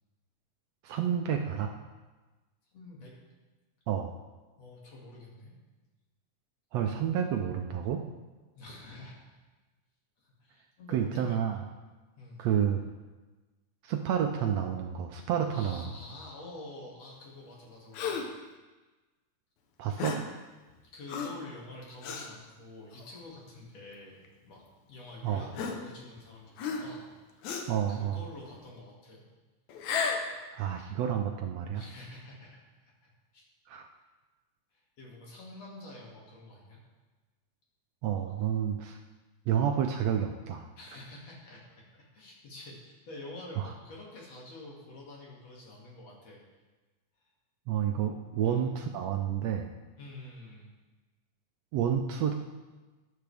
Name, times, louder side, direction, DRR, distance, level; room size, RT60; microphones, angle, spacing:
voice 1, 0.8-1.7 3.9-4.1 6.7-8.0 10.9-11.6 12.4-12.8 13.8-15.8 19.8-20.2 25.2-25.5 27.7-28.2 30.5-31.8 33.7-33.9 38.0-39.0 39.5-40.7 43.6-43.7 47.7-49.7 51.7-52.3, right 9 dB, 75° right, 4 dB, 1.7 m, -29 dB
voice 2, 2.7-3.1 4.6-5.5 8.6-9.1 10.2-11.7 12.2-12.5 15.5-18.1 20.9-24.6 24.9-27.4 27.9-29.3 31.7-33.5 34.7-36.8 40.8-41.6 41.9-46.4 48.4-48.7 50.0-50.7, left 2 dB, 60° left, -3 dB, 3.5 m, -48 dB
Gasp, 17.9-18.4 20.0-20.3 21.1-21.5 22.0-22.3 23.0-23.2 24.2-24.3 25.5-26.2 26.6-27.0 27.4-27.8 29.7-30.3, left 5 dB, 75° left, 2.3 m, -34 dB
14.0 x 10.5 x 3.5 m, 1.2 s
omnidirectional pair, 3.4 m